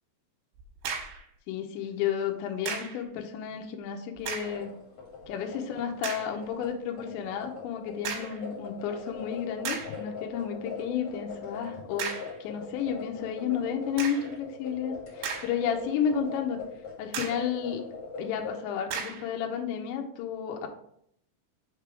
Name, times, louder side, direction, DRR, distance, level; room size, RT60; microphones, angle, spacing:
sound 1, 0.6-1.3 2.7-3.0 4.2-4.6 5.2-5.3 6.0-6.3 8.0-8.4 9.1-9.2 9.6-10.0 12.0-12.4 14.0-14.3 15.0-15.8 16.2-16.3 17.1-17.5 18.9-19.3, right 6 dB, 75° right, 3.0 m, -35 dB
voice 1, 1.5-4.7 5.3-12.1 12.4-16.6 17.0-17.8 18.2-20.7, left 8 dB, 85° left, 3 dB, 3.0 m, -32 dB
sound 2, 4.2-18.5, left 5 dB, 50° left, 2.4 m, -41 dB
6.6 x 3.4 x 4.6 m, 0.71 s
omnidirectional pair, 5.2 m